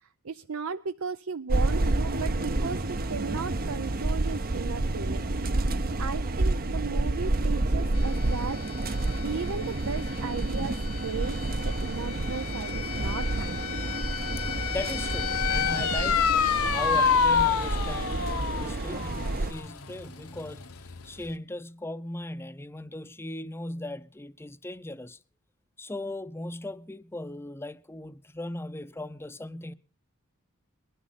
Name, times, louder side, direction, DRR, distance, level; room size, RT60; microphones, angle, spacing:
voice 1, 0.0-5.3 6.0-8.7 9.2-10.8 11.0-11.4 11.6-13.8 15.6-15.7, right 5 dB, 75° right, 0.6 m, -36 dB
sound 1, 1.5-19.5, right 2 dB, 45° right, 0.8 m, -29 dB
sound 2, 8.0-21.3, left 6 dB, 85° left, 1.3 m, -30 dB
voice 2, 13.9-16.3 16.6-18.3 18.6-20.6 21.0-25.2 25.8-29.7, left 1 dB, 10° left, 0.6 m, -38 dB
20.5 x 12.5 x 4.2 m
head